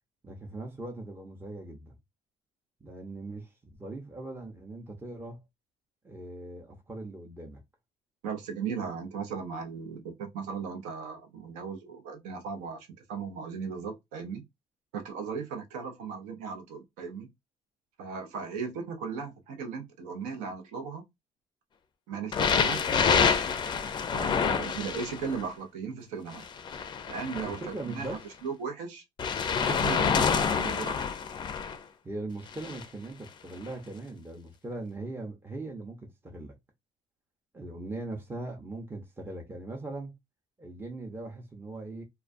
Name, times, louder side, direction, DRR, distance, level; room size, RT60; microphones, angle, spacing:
voice 1, 0.2-2.0 2.8-5.4 6.0-7.6 27.4-28.3 32.0-36.6 37.5-40.1 40.6-42.0, right 2 dB, 15° right, 0.6 m, -40 dB
voice 2, 8.2-14.4 14.9-17.3 18.0-21.0 22.1-23.5 24.1-26.5 27.1-29.0 29.7-31.1, right 5 dB, 90° right, 0.7 m, -37 dB
sound 1, 22.3-25.4 26.3-28.2 29.2-31.8 32.5-32.9 33.7-33.8, left 6 dB, 35° left, 0.4 m, -27 dB
2.3 x 2.2 x 2.5 m
cardioid pair, 95°, 13 cm